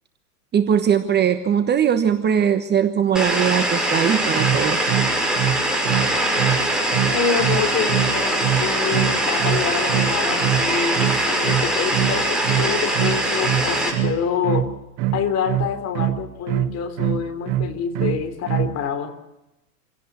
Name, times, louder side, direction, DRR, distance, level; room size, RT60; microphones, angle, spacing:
voice 1, 0.5-4.9, right 8 dB, 20° right, 9 dB, 1.2 m, -20 dB
sound 1, 3.1-13.9, right 1 dB, ahead, 6.0 m, -22 dB
sound 2, 4.4-18.8, right 12 dB, 45° right, 1.1 m, -24 dB
voice 2, 7.0-14.7 15.1-19.1, left 7 dB, 30° left, 8 dB, 3.4 m, -26 dB
27.0 x 17.0 x 6.2 m, 0.93 s
hypercardioid pair, 105°, 48 cm